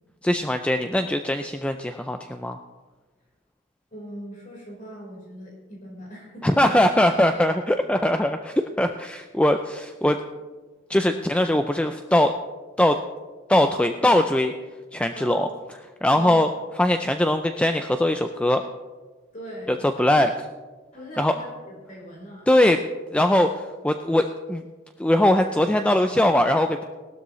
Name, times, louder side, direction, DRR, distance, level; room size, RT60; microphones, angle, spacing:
voice 1, 0.2-2.6 6.4-10.2 10.9-12.3 12.8-13.0 13.5-14.5 14.9-15.5 16.0-16.5 16.8-18.6 19.7-20.3 21.2-21.4 22.5-22.8 23.1-24.6 25.0-26.8, left 1 dB, 5° left, 7 dB, 0.3 m, -21 dB
voice 2, 3.9-6.8 14.0-14.1 15.1-15.5 16.1-16.4 19.3-19.7 20.9-22.5, equal, 40° left, -3 dB, 4.2 m, -40 dB
18.0 x 12.5 x 3.1 m, 1.3 s
head